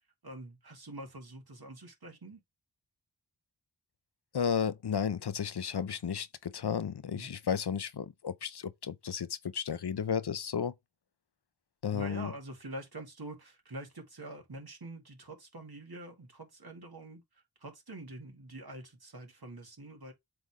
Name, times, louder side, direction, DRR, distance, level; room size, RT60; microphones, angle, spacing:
voice 1, 0.0-2.4 7.1-7.3 11.9-20.1, right 2 dB, 60° right, 2.2 m, -46 dB
voice 2, 4.3-10.7 11.8-12.3, left 7 dB, 65° left, 0.7 m, -33 dB
7.8 x 3.4 x 3.6 m
wide cardioid pair, 60°, 42 cm